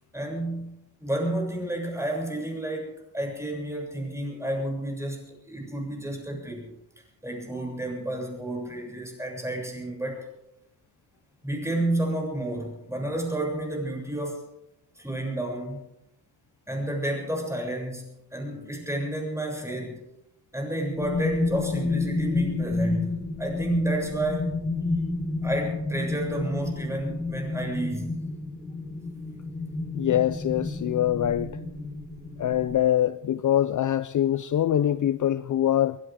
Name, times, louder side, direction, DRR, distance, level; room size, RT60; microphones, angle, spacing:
voice 1, 0.1-6.7 7.2-10.2 11.4-14.4 15.0-15.9 16.7-18.1 18.3-20.0 20.5-24.6 25.4-28.3, right 1 dB, 5° right, 7.3 m, -31 dB
sound 1, 21.0-32.8, left 3 dB, 15° left, 5.0 m, -30 dB
voice 2, 29.9-31.6 32.4-36.0, left 11 dB, 50° left, 0.6 m, -24 dB
23.0 x 16.5 x 3.8 m
cardioid pair, 90°, 39 cm